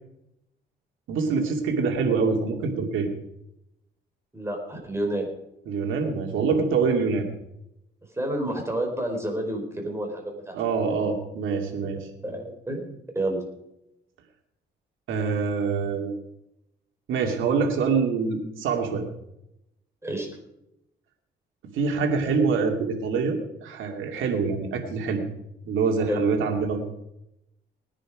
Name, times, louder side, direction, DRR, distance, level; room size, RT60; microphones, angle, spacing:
voice 1, 1.1-3.1 5.7-7.3 10.5-12.1 15.1-16.1 17.1-19.1 21.7-25.2 25.7-26.8, right 5 dB, 80° right, 2 dB, 2.5 m, -25 dB
voice 2, 4.3-5.3 8.1-11.1 12.2-13.4 20.0-20.3 26.1-26.2, right 1 dB, 15° right, 2 dB, 4.9 m, -30 dB
19.0 x 10.0 x 5.1 m, 0.83 s
cardioid pair, 90°, 20 cm